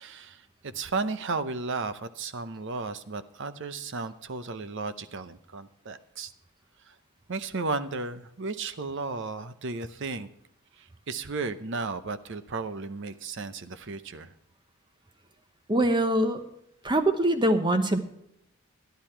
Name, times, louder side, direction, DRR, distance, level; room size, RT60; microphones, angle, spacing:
voice 1, 0.0-6.3 6.8-7.0 7.3-10.3 10.8-14.3, right 3 dB, 55° right, 12 dB, 0.7 m, -34 dB
voice 2, 15.7-16.4 16.8-18.0, right 1 dB, 20° right, 8 dB, 1.0 m, -23 dB
12.0 x 10.5 x 4.5 m, 0.78 s
head